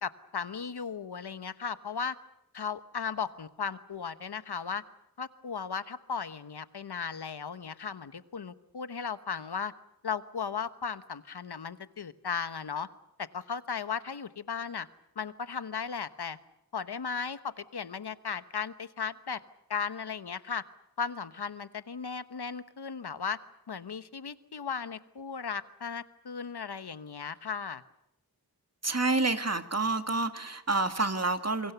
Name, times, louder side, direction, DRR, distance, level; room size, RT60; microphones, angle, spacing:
voice 1, 0.0-2.2 2.5-4.8 5.2-9.7 10.0-12.9 13.2-14.9 15.2-16.4 16.7-19.4 19.7-20.6 21.0-23.4 23.7-27.8, left 6 dB, 90° left, 13 dB, 1.1 m, -36 dB
voice 2, 28.8-31.7, right 3 dB, 40° right, 8 dB, 2.0 m, -28 dB
27.5 x 23.5 x 6.9 m, 0.83 s
wide cardioid pair, 40°, 38 cm